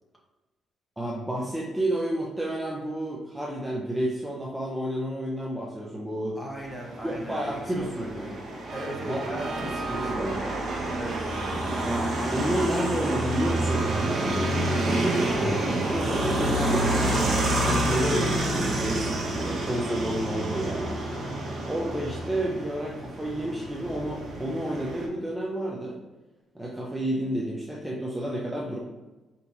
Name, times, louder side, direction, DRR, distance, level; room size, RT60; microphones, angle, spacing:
voice 1, 1.0-6.4 7.0-8.3 9.0-10.4 11.8-19.1 19.4-21.0 21.6-26.0 26.5-28.8, right 1 dB, 5° right, -4 dB, 0.6 m, -31 dB
voice 2, 6.4-8.4 8.7-10.2 10.9-11.2, equal, 10° left, -1 dB, 1.0 m, -38 dB
sound 1, 6.6-25.1, right 1 dB, 50° right, 1.1 m, -28 dB
sound 2, 8.7-15.2, right 4 dB, 65° right, 0.5 m, -39 dB
4.7 x 2.9 x 2.7 m, 1.2 s
cardioid pair, 90°, 0 cm